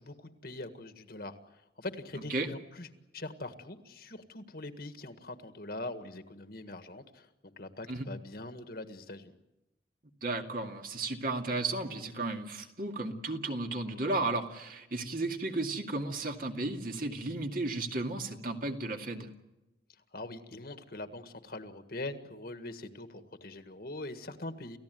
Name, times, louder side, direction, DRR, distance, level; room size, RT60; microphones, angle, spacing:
voice 1, 0.0-2.9 3.1-9.3 20.1-24.8, left 2 dB, 55° left, 9 dB, 1.8 m, -43 dB
voice 2, 10.2-19.3, right 2 dB, 50° right, 4 dB, 2.3 m, -34 dB
29.5 x 15.5 x 9.3 m, 0.97 s
head